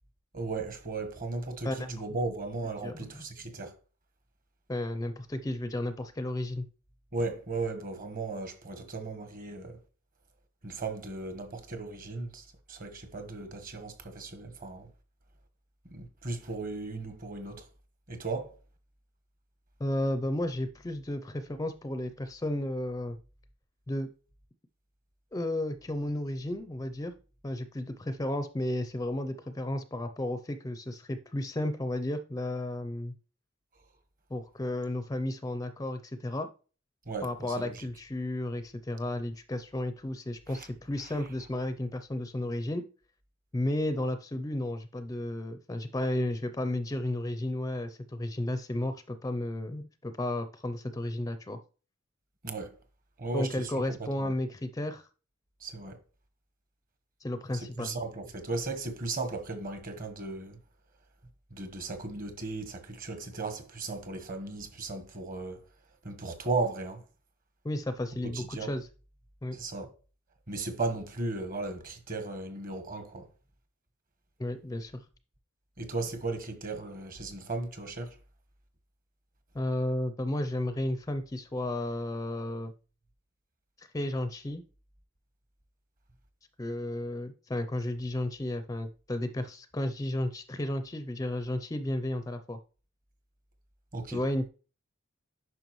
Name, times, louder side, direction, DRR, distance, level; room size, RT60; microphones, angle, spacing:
voice 1, 0.3-3.7 7.1-9.8 10.6-14.9 15.9-17.7 18.1-18.5 37.1-37.9 40.5-40.7 52.4-52.7 53.2-54.3 55.6-56.0 57.5-60.6 61.5-65.6 66.0-67.0 68.2-68.7 69.5-69.9 70.5-73.3 75.8-78.2 93.9-94.2, right 3 dB, 40° right, 1.2 m, -36 dB
voice 2, 2.8-3.2 4.7-6.7 19.8-23.2 23.9-24.1 25.3-27.1 27.4-33.1 34.3-36.5 37.2-42.9 43.5-51.6 53.3-55.0 57.2-57.9 67.6-68.9 69.4-69.6 74.4-75.0 79.5-82.7 83.8-84.6 86.6-92.6 94.1-94.5, left 1 dB, 15° left, 0.4 m, -33 dB
9.1 x 5.6 x 3.0 m
head